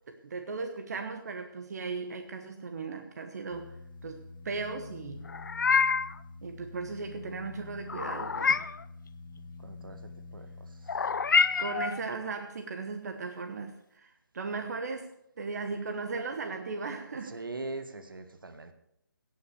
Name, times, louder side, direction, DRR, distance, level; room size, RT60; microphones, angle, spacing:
voice 1, 0.1-5.2 6.4-8.8 11.6-15.1 15.4-17.4, right 4 dB, 50° right, 6 dB, 1.2 m, -37 dB
sound 1, 3.5-12.1, left 3 dB, 35° left, 1.6 m, -47 dB
Meow, 5.3-6.2 7.9-8.8 10.9-12.0, left 5 dB, 60° left, 0.6 m, -27 dB
voice 2, 9.6-10.9 17.1-18.7, right 2 dB, 75° right, 9 dB, 1.7 m, -42 dB
18.0 x 6.0 x 6.7 m, 0.75 s
figure-of-eight pair, 150°, 11 cm